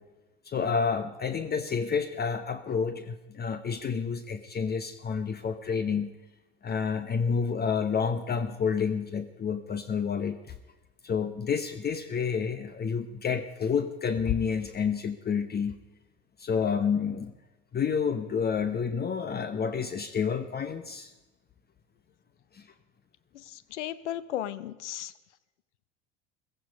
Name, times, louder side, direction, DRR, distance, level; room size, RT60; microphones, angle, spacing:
voice 1, 0.5-6.1 6.6-10.4 11.0-15.8 16.4-17.3 17.7-21.1 22.5-22.7, left 6 dB, 25° left, 11 dB, 0.9 m, -29 dB
voice 2, 23.3-25.1, left 12 dB, 75° left, 17 dB, 0.8 m, -35 dB
16.0 x 14.5 x 5.2 m, 1.1 s
hypercardioid pair, 75°, 36 cm